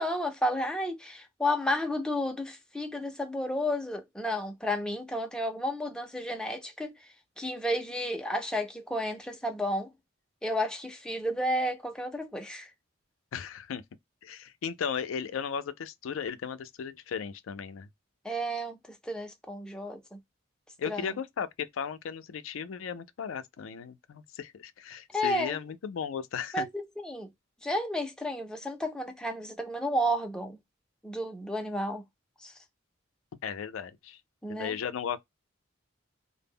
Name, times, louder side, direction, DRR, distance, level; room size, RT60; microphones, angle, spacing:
voice 1, 0.0-9.9 10.4-12.7 18.2-20.2 20.8-21.1 25.1-25.6 26.5-27.3 27.6-30.6 31.0-32.0 32.4-32.5 34.4-34.7, equal, 5° left, 0.4 m, -32 dB
voice 2, 13.3-13.8 14.2-17.9 20.8-26.7 33.4-34.2 34.5-35.2, left 7 dB, 85° left, 0.4 m, -36 dB
2.0 x 2.0 x 3.4 m
head